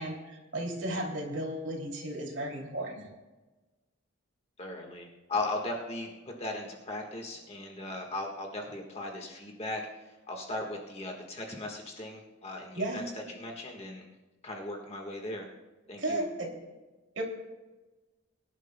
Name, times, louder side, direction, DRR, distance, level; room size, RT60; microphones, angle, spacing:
voice 1, 0.0-3.1 12.8-13.1 16.0-16.5 17.1-17.2, right 1 dB, 65° right, -1 dB, 2.8 m, -34 dB
voice 2, 4.6-6.1 6.4-9.8 10.3-13.0 13.3-14.0 14.4-15.5 15.9-16.2, left 2 dB, 30° left, 1 dB, 1.5 m, -37 dB
23.5 x 11.0 x 2.2 m, 1.2 s
head